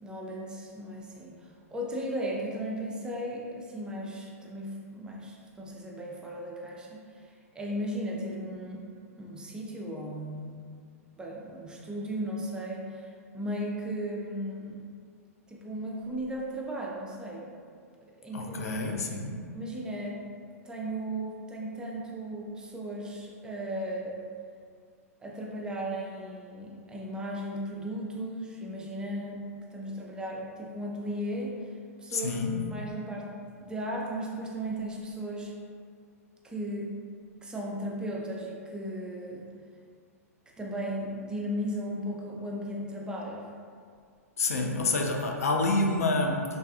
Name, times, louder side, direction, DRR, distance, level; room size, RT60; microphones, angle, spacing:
voice 1, 0.0-8.9 9.2-10.6 11.2-14.8 15.5-17.5 18.0-19.1 19.5-20.2 20.6-24.2 25.2-29.4 29.7-31.6 32.0-35.5 36.4-36.9 37.4-39.5 40.6-43.5, equal, 10° right, -3 dB, 0.3 m, -36 dB
voice 2, 18.3-19.4 32.1-32.6 44.4-46.4, left 2 dB, 70° left, 2 dB, 0.4 m, -28 dB
3.4 x 2.3 x 2.4 m, 2.2 s
figure-of-eight pair, 105°, 8 cm